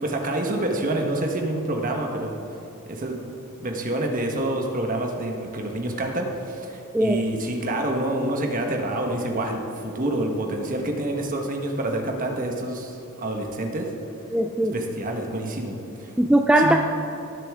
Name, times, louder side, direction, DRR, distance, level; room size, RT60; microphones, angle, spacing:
voice 1, 0.0-2.3 2.9-3.2 3.6-13.9 14.7-16.1 16.6-16.8, right 1 dB, 35° right, 2 dB, 1.3 m, -27 dB
voice 2, 14.3-14.7 16.2-16.8, right 1 dB, 5° right, 2 dB, 0.3 m, -19 dB
19.5 x 7.0 x 3.6 m, 2.8 s
head